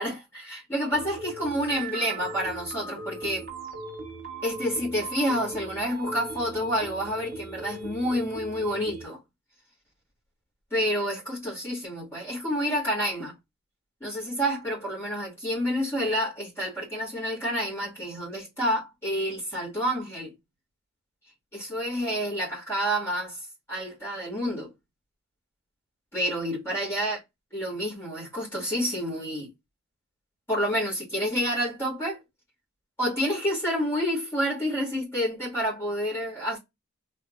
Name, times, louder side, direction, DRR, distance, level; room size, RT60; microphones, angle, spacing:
voice 1, 0.0-3.5 4.4-9.2 10.7-13.3 14.0-20.3 21.5-23.4 23.7-24.7 26.1-27.2 27.5-29.5 30.5-32.2 33.0-36.6, equal, 10° left, 1.9 m, -29 dB
sound 1, 0.9-9.0, right 3 dB, 45° right, 1.2 m, -39 dB
3.6 x 2.7 x 2.4 m
head